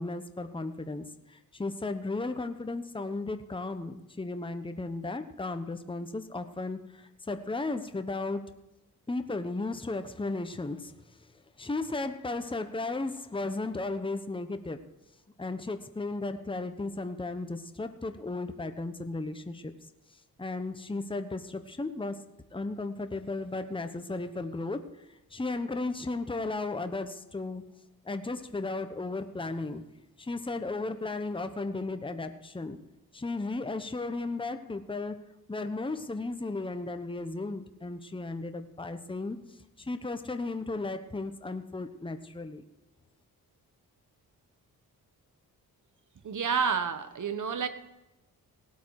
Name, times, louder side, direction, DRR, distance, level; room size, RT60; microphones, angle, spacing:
voice 1, 0.0-8.4 9.1-10.9 11.6-14.8 15.4-19.7 20.4-22.2 22.5-25.0 25.3-27.7 28.0-29.8 30.2-32.8 33.1-35.2 35.5-42.6, left 3 dB, 15° left, 8 dB, 1.0 m, -35 dB
voice 2, 46.2-47.7, right 6 dB, 55° right, 11 dB, 1.3 m, -29 dB
18.0 x 8.2 x 4.8 m, 0.96 s
cardioid pair, 65°, 37 cm